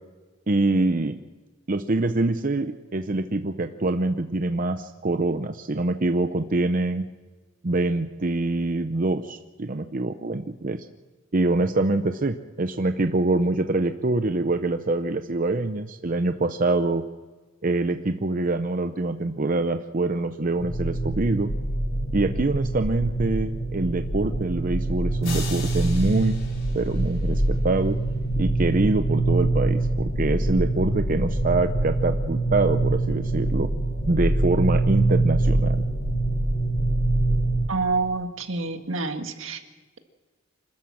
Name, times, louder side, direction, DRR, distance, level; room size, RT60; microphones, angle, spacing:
voice 1, 0.5-1.2 1.7-7.1 7.6-10.9 11.3-17.0 17.6-21.5 22.1-26.4 26.7-28.0 28.4-33.7 34.1-35.8, right 2 dB, 45° right, 8 dB, 0.7 m, -25 dB
sound 1, 20.6-37.7, right 2 dB, 50° left, 5.8 m, -24 dB
sound 2, 25.2-27.6, left 5 dB, 75° left, 4.8 m, -39 dB
voice 2, 37.7-39.6, right 3 dB, 75° right, 6 dB, 1.8 m, -27 dB
26.5 x 13.0 x 7.6 m, 1.4 s
head